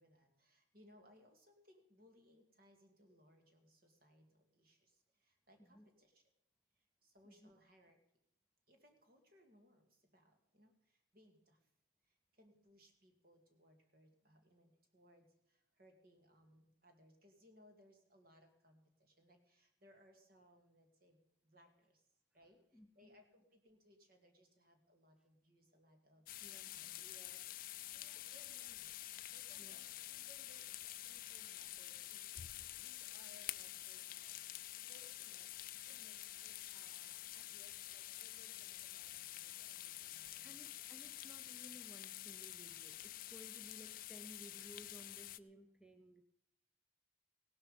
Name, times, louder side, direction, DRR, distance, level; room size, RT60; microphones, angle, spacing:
voice 1, 0.0-6.2 6.7-8.0 8.7-11.7 12.0-22.1 22.3-34.5 34.9-40.7, equal, 50° right, 4 dB, 2.5 m, -68 dB
voice 2, 22.7-23.1 26.4-26.8 29.6-29.8 40.4-46.2, equal, 5° right, 6 dB, 0.6 m, -59 dB
sound 1, 26.3-45.4, left 14 dB, 45° left, 0.4 m, -49 dB
17.0 x 12.0 x 5.4 m, 0.77 s
head